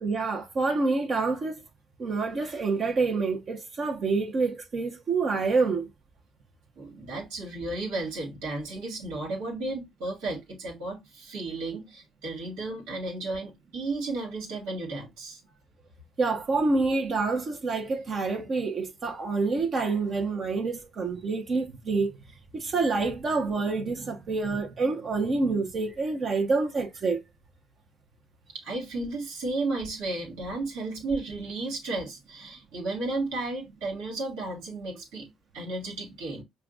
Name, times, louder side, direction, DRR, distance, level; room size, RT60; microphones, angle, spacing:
voice 1, 0.0-1.6 2.0-5.9 16.2-22.1 22.5-27.2, right 3 dB, 50° right, 1.1 m, -27 dB
voice 2, 6.8-15.4 28.5-36.4, right 2 dB, 85° right, 1.9 m, -33 dB
5.6 x 2.5 x 2.5 m
supercardioid pair, 75°, 0 cm